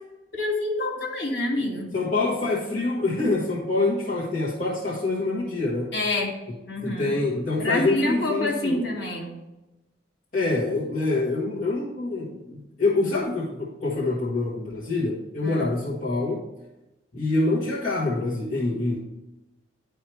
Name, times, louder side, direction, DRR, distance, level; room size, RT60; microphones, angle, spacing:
voice 1, 0.3-1.9 5.9-6.3 6.7-7.2 7.6-9.3 15.4-15.7, left 2 dB, 60° left, -2 dB, 2.4 m, -27 dB
voice 2, 1.9-5.9 6.8-8.9 10.3-16.4 17.1-19.0, left 2 dB, 40° left, -7 dB, 1.3 m, -26 dB
11.0 x 4.6 x 3.3 m, 1.0 s
head